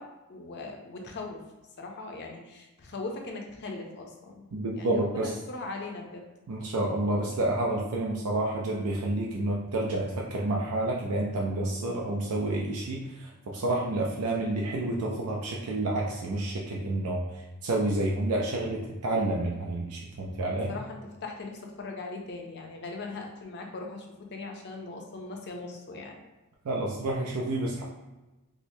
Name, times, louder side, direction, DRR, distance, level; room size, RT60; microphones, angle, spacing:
voice 1, 0.0-1.4 1.8-6.2 20.7-24.0 24.3-26.1, left 3 dB, 50° left, 1 dB, 0.6 m, -40 dB
voice 2, 4.5-5.4 6.5-17.2 17.6-20.7 26.6-27.8, right 2 dB, 90° right, -2 dB, 0.5 m, -29 dB
4.7 x 2.1 x 2.7 m, 1.1 s
head